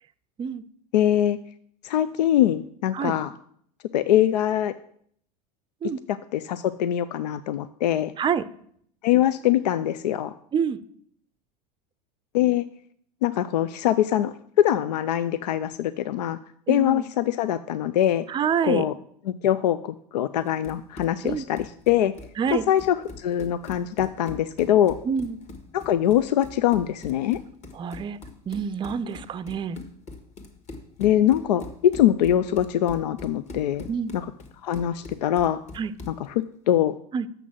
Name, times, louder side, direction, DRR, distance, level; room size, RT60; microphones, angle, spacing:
voice 1, 0.9-1.4 1.8-3.3 3.9-4.7 6.1-8.1 9.0-10.3 12.3-12.7 13.2-16.4 16.7-18.3 18.6-18.9 19.3-22.1 22.5-25.0 25.7-27.4 31.0-33.9 34.1-34.3 34.6-35.6 36.1-37.0, left 11 dB, 80° left, 14 dB, 0.4 m, -23 dB
voice 2, 16.7-17.0 18.3-18.8 21.2-21.4 22.4-22.7 25.1-25.4 27.7-28.2 28.5-29.8 33.9-34.1 35.8-35.9 37.1-37.3, right 7 dB, 25° right, 15 dB, 0.5 m, -27 dB
Run, 20.4-36.3, left 3 dB, 35° left, 1.7 m, -43 dB
6.8 x 6.1 x 7.5 m, 0.65 s
hypercardioid pair, 90°, 21 cm